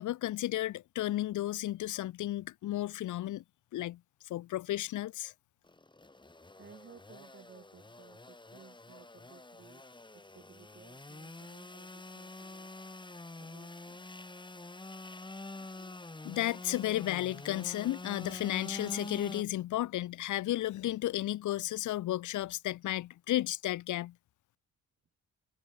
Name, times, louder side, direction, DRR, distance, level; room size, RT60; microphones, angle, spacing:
voice 1, 0.0-3.4 3.7-5.3 15.8-15.9 16.2-24.1, left 14 dB, 75° left, 1.3 m, -33 dB
Engine / Sawing, 5.6-19.4, left 2 dB, 15° left, 4.2 m, -46 dB
voice 2, 6.6-9.8 10.1-12.7 13.0-14.1, right 6 dB, 45° right, 6.3 m, -58 dB
cardioid pair, 90°, 30 cm